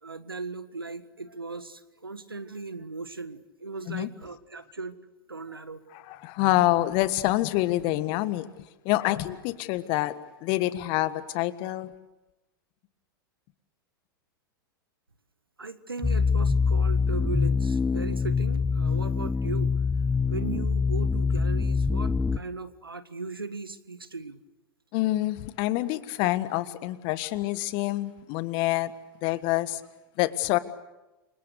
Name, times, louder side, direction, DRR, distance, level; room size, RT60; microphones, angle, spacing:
voice 1, 0.0-5.0 5.3-5.8 15.6-19.7 20.3-24.4, right 3 dB, 90° right, 13 dB, 1.6 m, -37 dB
voice 2, 5.9-8.4 8.8-10.1 10.4-11.9 24.9-28.9 29.2-29.8 30.2-30.6, left 17 dB, 45° left, 14 dB, 1.6 m, -26 dB
sound 1, 16.0-22.4, left 5 dB, 10° left, 0.8 m, -25 dB
29.5 x 25.0 x 6.7 m, 1.0 s
figure-of-eight pair, 95°, 12 cm